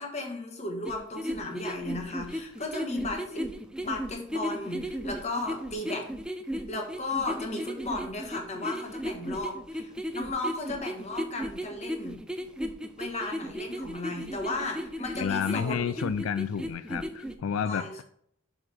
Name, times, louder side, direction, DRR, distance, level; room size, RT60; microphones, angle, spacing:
voice 1, 0.0-3.5 3.8-6.1 6.7-12.2 13.0-15.8 17.6-18.0, left 2 dB, 30° left, 2 dB, 1.3 m, -35 dB
sound 1, 0.8-17.3, equal, 5° right, 0.4 m, -35 dB
voice 2, 15.2-18.0, left 7 dB, 85° left, 14 dB, 0.3 m, -30 dB
7.5 x 6.2 x 3.4 m, 0.69 s
head